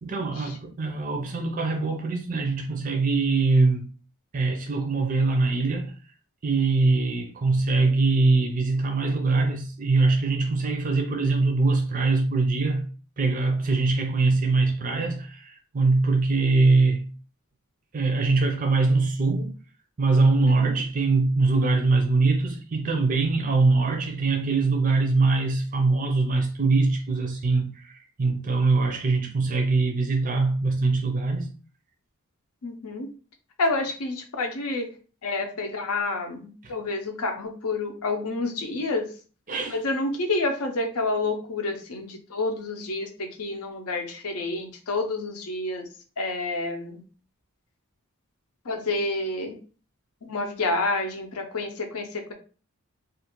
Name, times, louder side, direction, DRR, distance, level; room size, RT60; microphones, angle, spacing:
voice 1, 0.0-3.9 4.3-5.9 6.4-12.8 13.2-17.1 17.9-19.5 20.0-31.5 36.6-36.7 39.5-39.8, right 3 dB, 35° right, 0.4 m, -23 dB
voice 2, 20.4-20.8 32.6-33.1 33.6-34.9 35.2-39.1 39.7-45.9 46.2-47.0 48.6-49.6 50.2-52.3, left 2 dB, 85° left, 0.6 m, -29 dB
2.5 x 2.4 x 2.9 m
head